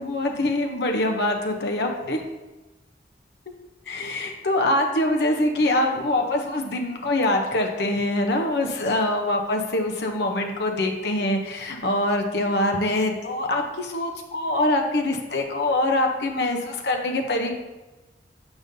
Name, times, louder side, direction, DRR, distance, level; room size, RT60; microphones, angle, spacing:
voice 1, 0.0-2.2 3.9-17.6, left 1 dB, 65° left, 2 dB, 0.7 m, -24 dB
8.0 x 5.1 x 2.6 m, 1.1 s
head